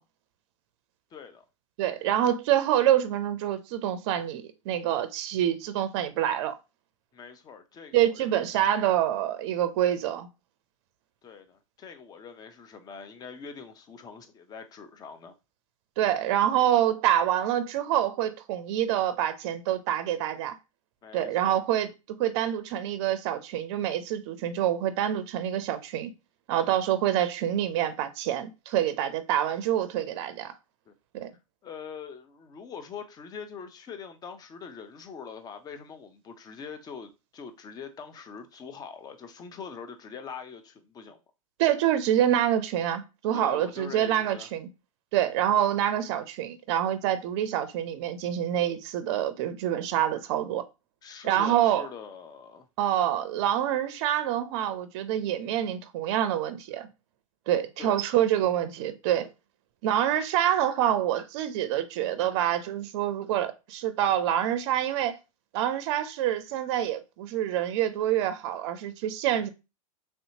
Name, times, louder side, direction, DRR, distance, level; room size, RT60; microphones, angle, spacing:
voice 1, 1.1-1.4 7.1-8.5 11.2-15.3 21.0-21.6 30.9-31.0 31.6-41.2 43.3-44.5 51.0-52.7 57.8-58.0, left 6 dB, 20° left, 0.5 m, -43 dB
voice 2, 1.8-6.5 7.9-10.3 16.0-20.6 21.1-21.9 22.2-26.1 26.5-30.5 31.1-31.3 41.6-44.7 45.1-50.6 51.2-51.9 52.8-56.9 57.5-59.3 59.8-65.2 65.5-69.5, right 11 dB, 50° right, 0.5 m, -26 dB
3.3 x 2.8 x 2.7 m
hypercardioid pair, 105°, 17 cm